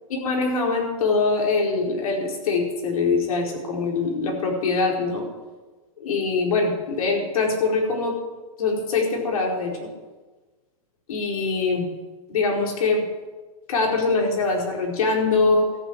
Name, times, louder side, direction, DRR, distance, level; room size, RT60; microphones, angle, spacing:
voice 1, 0.1-5.3 6.0-8.2 8.6-9.9 11.1-11.9 12.3-13.0 13.7-15.7, left 3 dB, 80° left, 0 dB, 4.6 m, -23 dB
13.5 x 9.1 x 8.0 m, 1.3 s
supercardioid pair, 155°, 18 cm